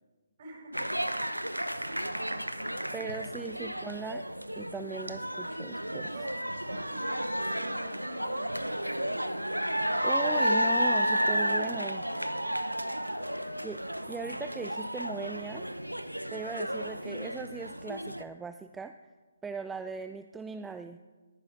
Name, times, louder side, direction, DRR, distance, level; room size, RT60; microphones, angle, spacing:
voice 1, 0.4-1.3 1.7-3.3 6.1-9.1 13.4-13.5, right 2 dB, 40° right, 1 dB, 5.4 m, -49 dB
sound 1, 0.7-18.2, equal, 90° right, 0.8 m, -32 dB
voice 2, 2.9-4.2 4.6-6.1 10.0-12.1 13.6-13.8 14.1-15.6 16.3-18.9 19.4-21.0, right 4 dB, 5° right, 9 dB, 0.4 m, -39 dB
20.0 x 10.5 x 5.5 m, 1.3 s
figure-of-eight pair, 140°, 0 cm